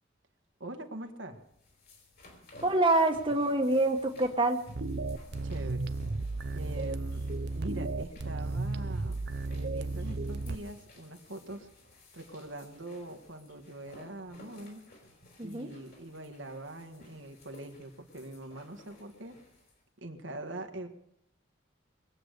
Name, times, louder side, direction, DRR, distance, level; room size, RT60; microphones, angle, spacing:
voice 1, 0.6-1.4 5.4-5.9 6.5-7.3 7.5-9.2 9.5-11.7 12.1-14.8 15.4-19.3 20.0-20.9, right 1 dB, 85° right, 5 dB, 1.7 m, -43 dB
sound 1, 1.4-19.8, left 1 dB, 60° left, 4.6 m, -54 dB
voice 2, 2.6-4.6 15.4-15.7, right 2 dB, 25° right, 3 dB, 1.2 m, -26 dB
sound 2, 4.7-10.5, right 3 dB, 60° right, 0.7 m, -34 dB
22.0 x 8.1 x 6.6 m, 0.75 s
head